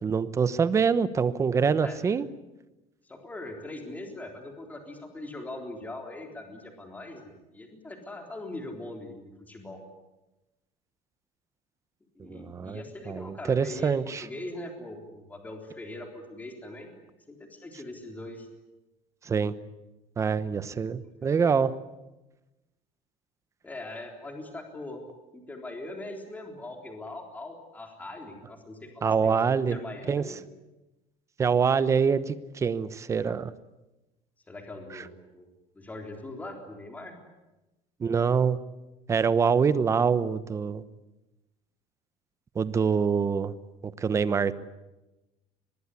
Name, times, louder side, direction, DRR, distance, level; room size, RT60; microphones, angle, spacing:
voice 1, 0.0-2.3 12.3-14.2 19.2-19.5 20.2-21.7 29.0-29.8 30.1-30.3 31.4-33.5 34.9-35.0 38.0-38.6 39.1-40.8 42.5-43.5 43.8-44.6, right 6 dB, 20° right, 14 dB, 1.0 m, -25 dB
voice 2, 3.1-9.8 12.2-16.9 17.3-18.5 20.7-21.3 23.6-25.1 25.3-30.4 34.5-35.5 35.7-37.1, left 2 dB, 10° left, 3 dB, 3.7 m, -41 dB
24.5 x 20.5 x 9.8 m, 1.0 s
cardioid pair, 170°, 14 cm